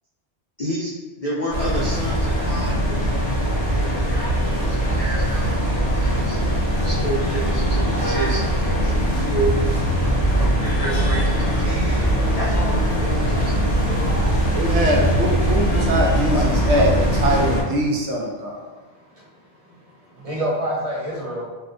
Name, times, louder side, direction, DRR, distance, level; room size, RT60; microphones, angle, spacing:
voice 1, 0.6-3.1 3.7-14.2, right 1 dB, 55° left, -5 dB, 0.4 m, -31 dB
sound 1, 1.5-17.6, equal, 85° left, 1.3 m, -21 dB
voice 2, 14.5-16.9 17.2-18.6, right 1 dB, 85° right, -1 dB, 1.0 m, -22 dB
voice 3, 20.1-21.5, right 1 dB, 35° right, -6 dB, 0.9 m, -27 dB
4.0 x 2.1 x 2.5 m, 1.3 s
omnidirectional pair, 1.2 m